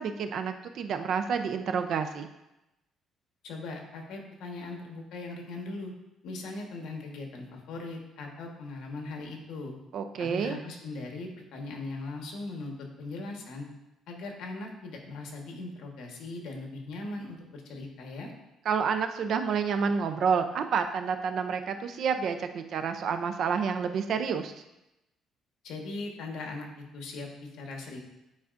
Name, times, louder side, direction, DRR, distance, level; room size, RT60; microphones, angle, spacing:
voice 1, 0.0-2.3 9.9-10.6 18.7-24.5, right 6 dB, 55° right, 8 dB, 0.5 m, -29 dB
voice 2, 3.4-5.9 6.2-9.7 10.2-13.7 14.1-18.3 25.6-26.7 26.9-28.0, left 3 dB, 75° left, 2 dB, 1.3 m, -39 dB
9.5 x 4.7 x 2.5 m, 0.92 s
cardioid pair, 150°, 0 cm